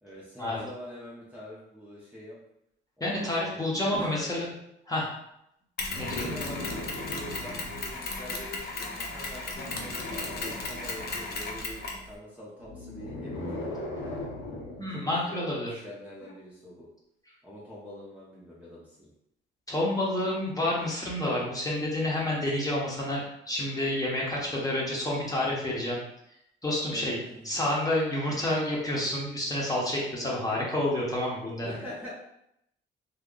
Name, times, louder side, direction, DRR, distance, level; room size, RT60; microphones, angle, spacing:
voice 1, 0.0-2.4 3.0-4.3 6.0-14.4 14.9-16.9 17.4-19.1 26.9-27.6 30.2-30.4 31.6-32.1, left 1 dB, 5° right, -7 dB, 0.9 m, -45 dB
voice 2, 3.0-4.5 4.9-5.1 6.0-6.3 14.8-15.7 19.7-26.0 26.6-27.2 27.4-31.7, left 1 dB, 15° left, -4 dB, 1.1 m, -29 dB
Mechanisms, 5.8-12.1, left 3 dB, 55° left, 0.8 m, -36 dB
sound 1, 5.9-7.9 9.5-11.3 12.6-14.9 16.2-16.3, left 1 dB, 90° left, 1.0 m, -38 dB
2.8 x 2.3 x 3.8 m, 0.79 s
cardioid pair, 90°, 20 cm